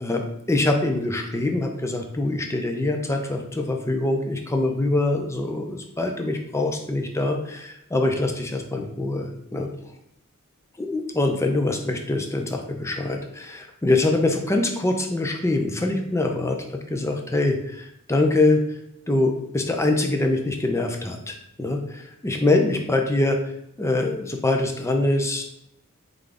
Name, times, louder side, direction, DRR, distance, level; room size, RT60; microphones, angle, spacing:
voice 1, 0.0-9.7 10.8-16.6 16.9-18.8 19.1-23.4 23.8-25.4, left 2 dB, 15° left, 3 dB, 0.5 m, -24 dB
3.7 x 3.7 x 3.4 m, 0.78 s
head